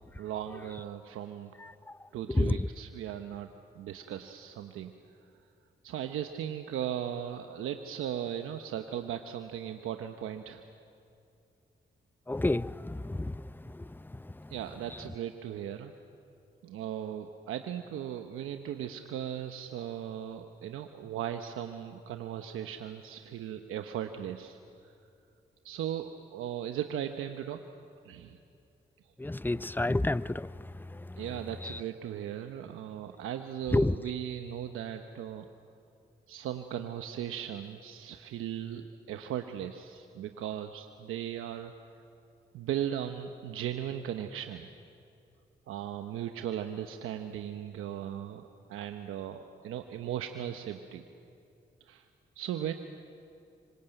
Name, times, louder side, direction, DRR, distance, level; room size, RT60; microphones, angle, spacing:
voice 1, 0.2-1.5 2.1-3.5 3.7-4.9 5.8-10.6 14.5-15.9 16.6-24.6 25.6-27.6 28.0-28.4 31.2-35.4 36.3-41.7 42.5-44.7 45.7-51.0 51.9-52.0 52.4-52.7, right 10 dB, 90° right, 1.0 m, -37 dB
voice 2, 2.3-2.7 12.3-13.3 13.7-13.8 29.2-30.5 31.6-31.8 33.7-33.9, left 2 dB, 10° left, 0.7 m, -28 dB
26.0 x 25.0 x 9.0 m
supercardioid pair, 40°, 21 cm